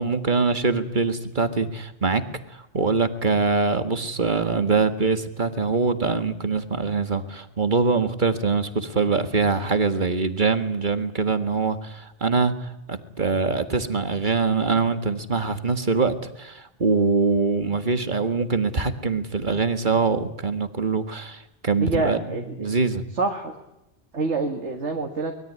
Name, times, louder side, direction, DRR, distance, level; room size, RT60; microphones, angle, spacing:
voice 1, 0.0-2.2 2.5-22.2 22.6-23.0, right 4 dB, 45° right, 9 dB, 1.8 m, -23 dB
voice 2, 21.8-22.7 23.2-23.5 24.1-25.3, right 3 dB, 80° right, 3 dB, 2.2 m, -26 dB
24.0 x 21.5 x 9.6 m, 0.90 s
omnidirectional pair, 1.2 m